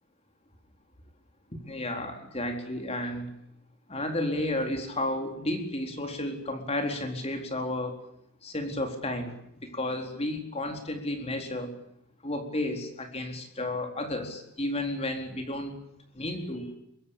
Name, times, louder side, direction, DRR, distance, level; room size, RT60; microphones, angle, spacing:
voice 1, 1.5-3.3 3.9-8.0 8.4-9.3 9.6-11.8 12.2-15.7 16.1-16.7, left 1 dB, 25° left, 5 dB, 4.3 m, -32 dB
24.5 x 23.5 x 8.7 m, 0.75 s
head